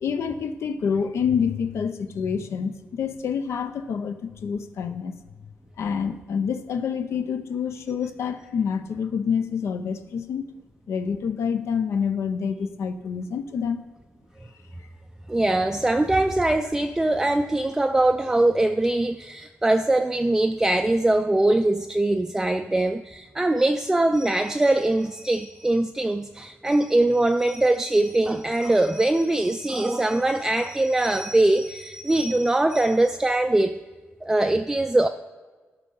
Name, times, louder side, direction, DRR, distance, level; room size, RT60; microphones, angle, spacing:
voice 1, 0.0-5.1 5.8-10.5 10.9-13.8, left 6 dB, 85° left, 8 dB, 0.6 m, -27 dB
voice 2, 15.3-33.8 34.2-35.1, right 2 dB, 10° right, 6 dB, 0.3 m, -22 dB
12.5 x 5.4 x 5.4 m, 1.4 s
wide cardioid pair, 150°, 5 cm